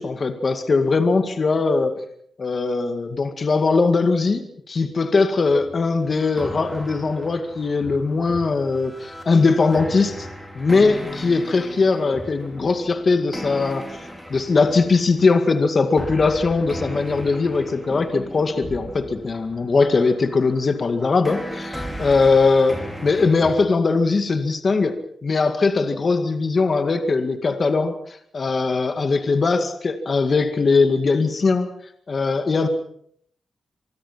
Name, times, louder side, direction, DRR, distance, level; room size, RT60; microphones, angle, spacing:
voice 1, 0.0-1.9 2.4-10.3 10.6-13.9 14.3-22.8 23.0-25.0 25.2-28.0 28.3-31.7 32.1-32.7, left 4 dB, 40° left, 8 dB, 2.1 m, -20 dB
sound 1, 5.5-15.3 16.0-23.6, equal, 5° left, 4.9 m, -36 dB
25.0 x 24.0 x 5.8 m, 0.65 s
wide cardioid pair, 150°, 0 cm